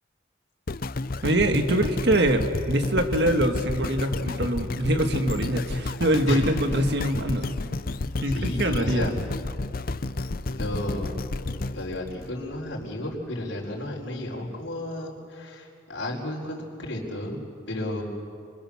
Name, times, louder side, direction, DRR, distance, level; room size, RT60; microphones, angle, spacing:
sound 1, 0.7-12.9 13.4-13.5, left 2 dB, 50° left, 0.6 m, -31 dB
voice 1, 1.2-7.5 8.2-9.1, right 1 dB, 60° right, 6 dB, 1.8 m, -24 dB
voice 2, 8.2-9.1 10.5-11.1 11.7-17.4 17.7-18.0, left 1 dB, 75° left, -3 dB, 4.7 m, -32 dB
26.0 x 25.0 x 7.2 m, 2.5 s
head